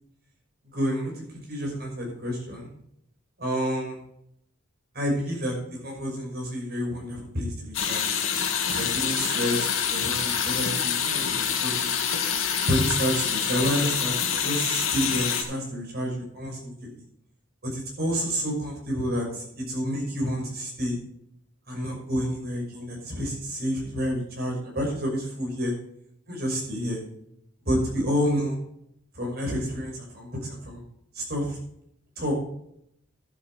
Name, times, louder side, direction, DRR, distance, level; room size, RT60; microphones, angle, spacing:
voice 1, 0.7-2.7 3.4-4.0 4.9-5.6 5.8-8.0 8.7-12.0 12.7-16.9 17.6-21.0 21.7-25.7 26.3-27.0 27.7-28.6 29.2-30.8 31.1-31.6 32.2-32.3, equal, 50° right, -1 dB, 5.8 m, -29 dB
sound 1, 7.7-15.4, left 7 dB, 75° left, 2.2 m, -26 dB
12.5 x 8.4 x 4.8 m, 0.72 s
head